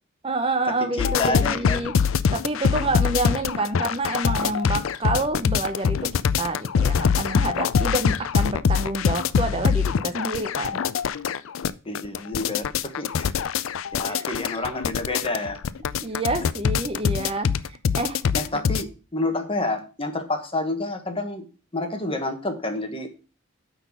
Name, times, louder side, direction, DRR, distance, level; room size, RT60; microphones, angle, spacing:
voice 1, 0.2-1.9 2.3-6.1 6.4-10.8 14.0-14.3 16.0-18.2, right 2 dB, 30° right, 8 dB, 0.7 m, -28 dB
voice 2, 0.8-1.8 11.8-13.3 13.9-15.6 18.3-21.5 21.7-23.1, left 2 dB, 25° left, 6 dB, 1.3 m, -29 dB
sound 1, 1.0-18.8, left 6 dB, 75° left, 0.4 m, -23 dB
9.1 x 4.1 x 6.0 m, 0.35 s
head